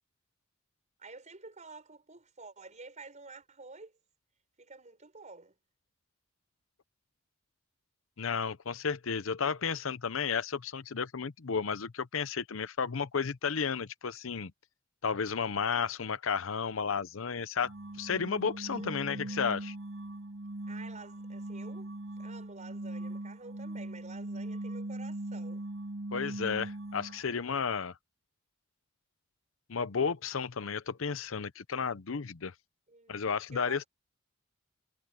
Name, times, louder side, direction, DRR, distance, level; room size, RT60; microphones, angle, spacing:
voice 1, 1.0-3.9 4.6-5.5 18.7-19.4 20.7-21.9 22.2-25.7 32.9-33.3 33.5-33.9, right 3 dB, 35° right, 5.4 m, -50 dB
voice 2, 8.2-14.5 15.0-17.7 18.0-19.7 26.1-28.0 29.7-32.5 33.1-33.8, left 6 dB, 70° left, 0.7 m, -33 dB
sound 1, 17.6-27.3, right 1 dB, 75° right, 2.1 m, -40 dB
head